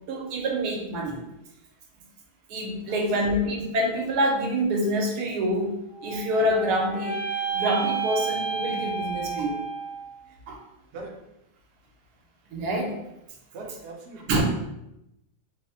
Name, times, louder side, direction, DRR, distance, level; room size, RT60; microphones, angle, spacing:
voice 1, 0.1-1.2 2.5-7.2 7.5-9.6 10.5-10.6 12.5-13.0 14.3-14.4, equal, 85° right, 1 dB, 1.2 m, -26 dB
voice 2, 2.9-3.3 10.9-11.2 13.5-14.4, right 2 dB, 60° right, 0 dB, 0.7 m, -41 dB
sound 1, 5.9-10.2, right 6 dB, 30° left, 0.5 m, -31 dB
3.2 x 2.0 x 2.7 m, 0.86 s
omnidirectional pair, 1.7 m